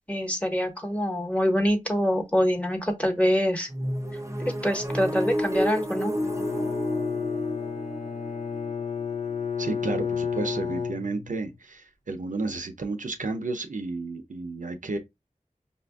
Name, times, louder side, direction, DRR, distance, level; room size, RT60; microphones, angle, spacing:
voice 1, 0.1-3.7 4.5-6.1, equal, 10° left, 1.2 m, -25 dB
sound 1, 3.7-9.5, equal, 20° right, 0.6 m, -31 dB
Bowed string instrument, 6.1-11.5, left 6 dB, 65° left, 0.6 m, -31 dB
voice 2, 9.6-15.0, right 3 dB, 70° right, 0.6 m, -32 dB
5.3 x 2.5 x 2.3 m
wide cardioid pair, 40°, 14 cm